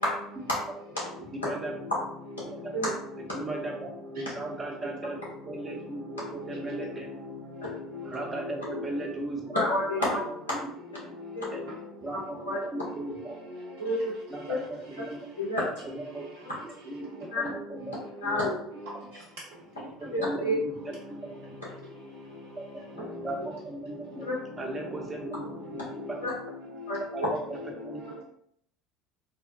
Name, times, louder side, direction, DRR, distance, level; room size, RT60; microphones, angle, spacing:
voice 1, 1.3-1.8 2.6-2.7 3.3-3.9 4.4-5.2 5.4-7.1 8.0-9.4 10.1-10.2 10.5-10.7 11.5-11.6 12.0-12.4 12.7-13.3 14.3-15.3 15.8-16.2 16.6-17.1 17.4-17.9 18.2-18.4 20.0-20.9 23.2-24.3 24.6-26.2 27.1-28.2, right 2 dB, 25° right, -1 dB, 0.8 m, -37 dB
voice 2, 6.7-8.1 8.6-9.0 12.8-12.9 13.1-13.2 13.5-13.7 23.1-23.2 24.8-24.9 25.2-25.4 26.0-27.0 27.5-28.1, left 3 dB, 65° right, -5 dB, 0.5 m, -40 dB
voice 3, 9.5-10.2 11.3-11.5 12.1-12.2 12.4-12.6 13.8-14.1 14.5-14.6 15.4-15.6 17.3-17.4 18.2-18.5 20.1-20.6 24.2-24.3 26.2-26.3 26.9-27.3, left 1 dB, 85° left, -7 dB, 1.1 m, -28 dB
3.4 x 2.1 x 2.2 m, 0.68 s
figure-of-eight pair, 65°, 0 cm